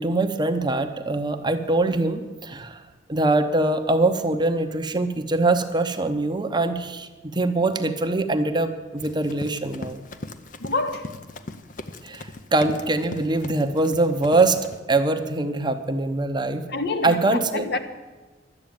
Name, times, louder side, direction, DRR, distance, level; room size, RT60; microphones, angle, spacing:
voice 1, 0.0-2.8 3.1-10.0 12.0-14.6 14.9-16.6 17.0-17.7, right 2 dB, 25° right, 0.8 m, -23 dB
Run, 9.0-14.8, left 2 dB, 45° left, 0.7 m, -39 dB
voice 2, 10.6-11.1 16.7-17.8, left 3 dB, 65° left, 1.0 m, -27 dB
12.0 x 8.1 x 8.9 m
head